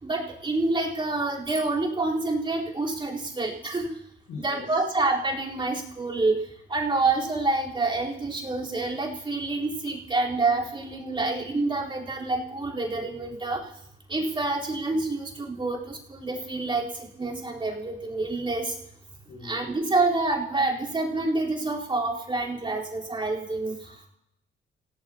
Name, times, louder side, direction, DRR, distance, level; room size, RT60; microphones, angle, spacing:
voice 1, 0.0-4.0 4.4-6.4 6.7-13.6 14.1-18.7 19.4-23.7, right 3 dB, 25° right, -3 dB, 3.9 m, -27 dB
voice 2, 4.3-4.9 19.3-19.6 23.8-24.1, left 4 dB, 90° left, -4 dB, 6.0 m, -42 dB
27.5 x 17.5 x 2.9 m, 0.77 s
cardioid pair, 90°, 20 cm